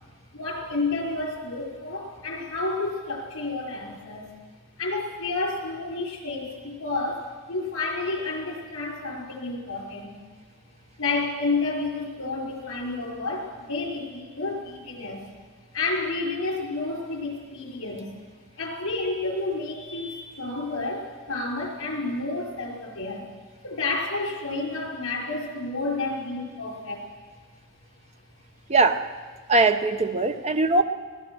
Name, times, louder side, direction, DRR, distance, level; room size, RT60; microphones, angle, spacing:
voice 1, 0.3-4.3 4.8-10.1 11.0-15.3 15.7-18.2 18.6-23.3 23.6-27.0, left 3 dB, 75° left, 0 dB, 5.2 m, -30 dB
voice 2, 28.7-29.1 29.5-30.8, right 3 dB, 30° right, 7 dB, 0.9 m, -20 dB
23.0 x 18.0 x 6.3 m, 1.5 s
head